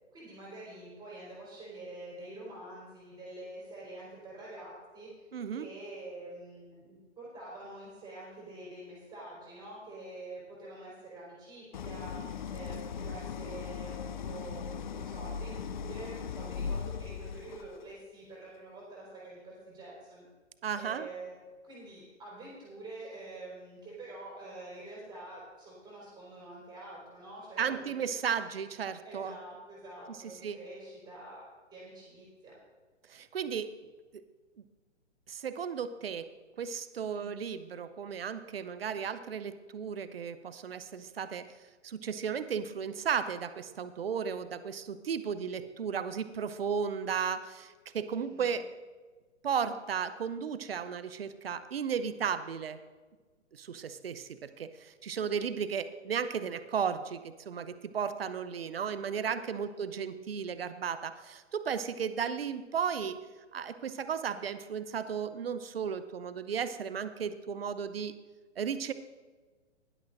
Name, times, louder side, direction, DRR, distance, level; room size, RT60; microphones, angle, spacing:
voice 1, 0.1-5.3 5.5-20.3 20.8-21.4 21.6-28.0 29.0-32.5 37.0-37.4 48.1-48.6 59.5-60.2, right 2 dB, 10° right, -6 dB, 3.8 m, -47 dB
voice 2, 5.3-5.7 20.6-21.1 27.6-29.3 30.4-30.6 33.1-33.7 34.1-34.2 35.3-36.3 36.6-41.5 41.8-48.6 49.4-52.8 53.5-63.2 63.5-68.1 68.6-68.9, right 7 dB, 55° right, 12 dB, 0.8 m, -34 dB
Idling, 11.7-17.8, left 6 dB, 40° left, 0.4 m, -38 dB
17.0 x 11.5 x 2.6 m, 1.4 s
figure-of-eight pair, 125°, 36 cm